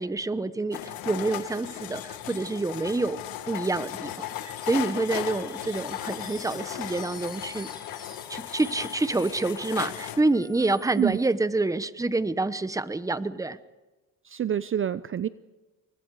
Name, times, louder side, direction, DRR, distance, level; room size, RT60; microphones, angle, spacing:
voice 1, 0.0-3.2 3.4-7.7 8.3-13.6, right 2 dB, 10° right, 13 dB, 1.0 m, -27 dB
sound 1, 0.7-10.2, left 12 dB, 90° left, 1.6 m, -36 dB
sound 2, 4.2-11.4, left 2 dB, 15° left, 4.5 m, -49 dB
voice 2, 14.2-15.3, right 9 dB, 40° right, 14 dB, 0.6 m, -27 dB
29.0 x 23.5 x 4.9 m, 1.1 s
cardioid pair, 115°, 34 cm